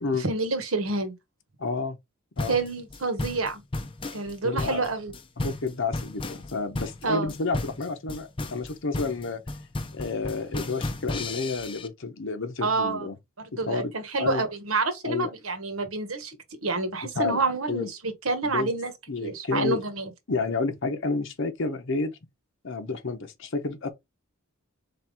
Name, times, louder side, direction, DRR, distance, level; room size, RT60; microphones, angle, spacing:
voice 1, 0.2-1.1 2.5-3.6 4.1-5.1 7.0-7.3 12.6-13.1 13.5-16.3 16.6-18.9 19.2-20.1, right 3 dB, 80° right, 1.3 m, -28 dB
voice 2, 1.6-2.0 2.4-2.6 4.4-4.8 5.4-9.4 9.9-13.1 13.7-13.9 14.2-14.4 15.0-15.3 17.2-17.4 17.7-17.9 18.4-18.7 19.1-19.8 20.3-22.1 22.6-23.9, left 3 dB, 60° left, 0.8 m, -30 dB
sound 1, 2.4-11.9, left 2 dB, 25° left, 0.5 m, -34 dB
4.3 x 3.5 x 3.5 m
head